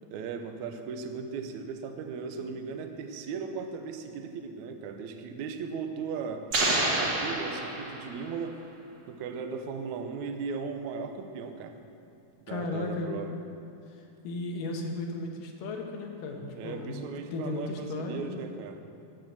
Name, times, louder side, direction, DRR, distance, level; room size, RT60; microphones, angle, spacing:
voice 1, 0.1-6.5 7.0-8.6 9.1-11.7 12.4-13.3 16.5-18.8, right 5 dB, 80° right, 6 dB, 1.7 m, -37 dB
sound 1, 6.5-8.4, right 2 dB, 60° right, 1.1 m, -28 dB
voice 2, 12.5-13.4 13.9-18.3, left 2 dB, 65° left, 2 dB, 2.6 m, -35 dB
13.0 x 7.6 x 7.7 m, 2.7 s
omnidirectional pair, 4.5 m